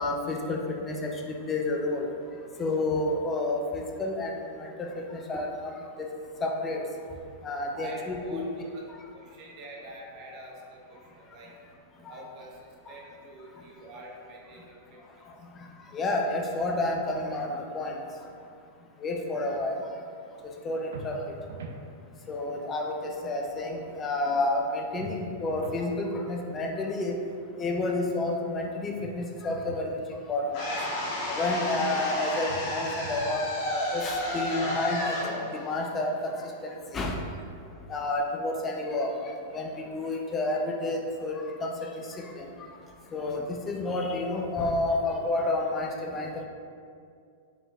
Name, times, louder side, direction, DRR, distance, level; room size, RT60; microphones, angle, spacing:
voice 1, 0.0-2.1 2.6-5.7 6.0-6.1 6.4-6.8 7.4-8.4 12.1-12.2 12.9-13.0 15.6-15.7 15.9-18.0 19.0-19.9 20.6-21.4 22.3-27.2 27.6-30.8 31.3-37.2 37.9-42.5 43.1-46.4, left 2 dB, 25° left, 2 dB, 0.5 m, -30 dB
voice 2, 7.7-11.5 12.1-15.0, right 1 dB, 45° right, -2 dB, 1.0 m, -46 dB
sound 1, 20.9-21.8 25.0-25.9 29.0-29.9 32.5-33.4, right 2 dB, 75° right, 0.4 m, -43 dB
sound 2, 30.5-36.6, left 1 dB, 50° left, 1.2 m, -32 dB
5.1 x 3.5 x 2.4 m, 2.4 s
hypercardioid pair, 115°, 0 cm